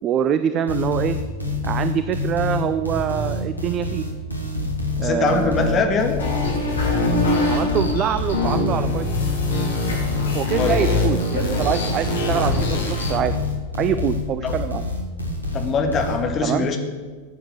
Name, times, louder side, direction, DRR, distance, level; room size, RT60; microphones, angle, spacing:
voice 1, 0.0-1.2 1.6-4.0 5.0-5.9 7.5-9.1 10.3-13.3 13.8-14.9 16.4-16.7, right 9 dB, 30° right, 12 dB, 0.6 m, -24 dB
sound 1, 0.7-16.2, left 2 dB, 90° left, 2.0 m, -27 dB
voice 2, 5.0-6.1 10.6-10.8 14.4-14.6 15.5-16.8, left 4 dB, 30° left, 4 dB, 2.0 m, -22 dB
sound 2, 6.2-13.2, left 2 dB, 65° left, 3.1 m, -24 dB
15.0 x 8.6 x 6.8 m, 1.5 s
figure-of-eight pair, 90°, 0 cm